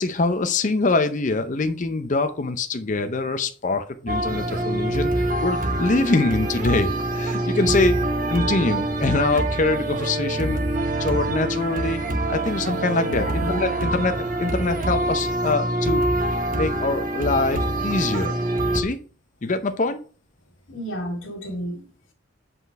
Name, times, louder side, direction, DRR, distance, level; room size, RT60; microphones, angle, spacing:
voice 1, 0.0-8.0 8.3-12.0 12.3-16.2 16.5-18.3 18.7-19.0 19.4-20.0, left 3 dB, 40° left, 8 dB, 0.6 m, -24 dB
sound 1, 4.1-18.8, right 1 dB, 45° right, 1.1 m, -25 dB
voice 2, 13.1-13.9 20.7-21.8, equal, 90° left, 0 dB, 2.2 m, -32 dB
7.9 x 4.0 x 4.6 m, 0.39 s
head